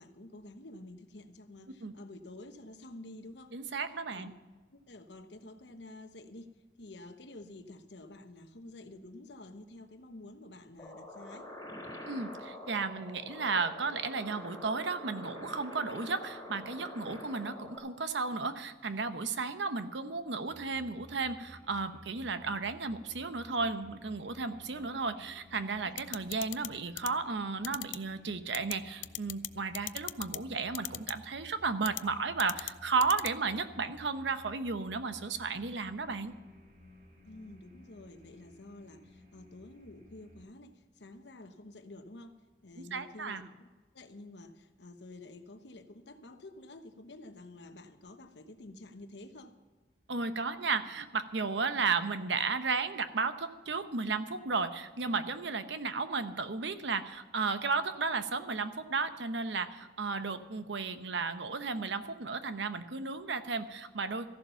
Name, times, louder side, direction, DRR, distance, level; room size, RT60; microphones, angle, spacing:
voice 1, 0.0-3.6 4.1-4.3 4.7-11.5 23.3-23.6 37.2-43.7 43.9-49.6, left 2 dB, 70° left, 8 dB, 1.1 m, -50 dB
voice 2, 3.5-4.3 12.1-36.3 42.8-43.5 50.1-64.3, right 4 dB, 75° right, 10 dB, 0.9 m, -34 dB
sound 1, 10.8-17.8, left 1 dB, 20° left, 3.4 m, -46 dB
sound 2, 20.5-40.4, equal, 50° right, 2.2 m, -56 dB
sound 3, 26.0-26.7 27.0-27.1 27.6-28.0 28.5-28.7 29.0-29.5 29.7-30.4 30.7-31.1 31.9-32.0 32.4-32.7 33.0-33.3, left 16 dB, 90° left, 0.4 m, -36 dB
14.5 x 11.0 x 5.7 m, 1.3 s
head